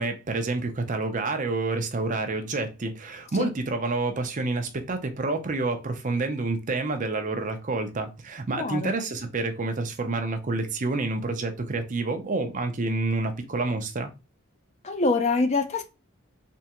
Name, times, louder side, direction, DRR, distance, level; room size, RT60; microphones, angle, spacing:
voice 1, 0.0-14.1, right 3 dB, 35° right, 0.5 m, -28 dB
voice 2, 8.6-8.9 14.8-15.8, left 3 dB, 30° left, 0.5 m, -24 dB
3.5 x 3.2 x 2.9 m
head